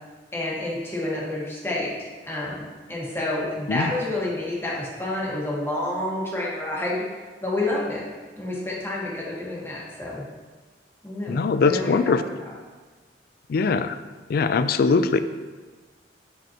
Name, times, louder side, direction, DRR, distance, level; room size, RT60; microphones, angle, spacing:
voice 1, 0.3-8.0 8.3-10.2 11.0-12.5, left 1 dB, 15° left, -5 dB, 1.3 m, -29 dB
voice 2, 11.3-12.2 13.5-13.9 14.3-15.2, left 4 dB, 55° left, 11 dB, 0.3 m, -21 dB
7.7 x 5.3 x 2.9 m, 1.3 s
head